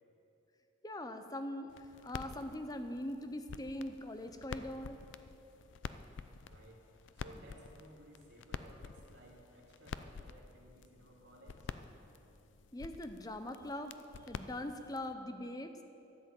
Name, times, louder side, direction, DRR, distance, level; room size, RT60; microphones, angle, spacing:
voice 1, 0.8-1.7 2.0-5.0 12.7-13.9 14.3-15.7, left 1 dB, 20° left, 7 dB, 0.6 m, -41 dB
sound 1, 1.7-15.1, left 5 dB, 70° left, 0.4 m, -49 dB
voice 2, 6.5-6.9 7.1-11.8, right 1 dB, 65° right, -3 dB, 2.7 m, -58 dB
12.5 x 7.9 x 7.6 m, 2.8 s
head